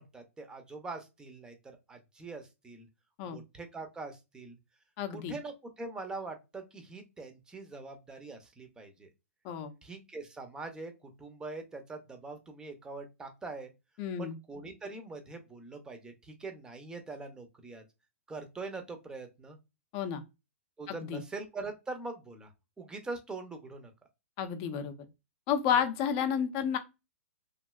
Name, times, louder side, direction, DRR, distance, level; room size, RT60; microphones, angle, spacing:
voice 1, 0.0-2.9 3.2-4.6 5.1-9.1 9.8-13.7 14.2-17.8 18.3-19.6 20.8-22.5 22.8-23.9 25.7-25.8, right 3 dB, 10° right, 0.6 m, -43 dB
voice 2, 5.0-5.3 9.4-9.7 14.0-14.3 19.9-20.2 20.9-21.2 24.4-25.0 25.5-26.8, left 8 dB, 35° left, 0.6 m, -31 dB
3.1 x 2.6 x 2.3 m
hypercardioid pair, 135°, 8 cm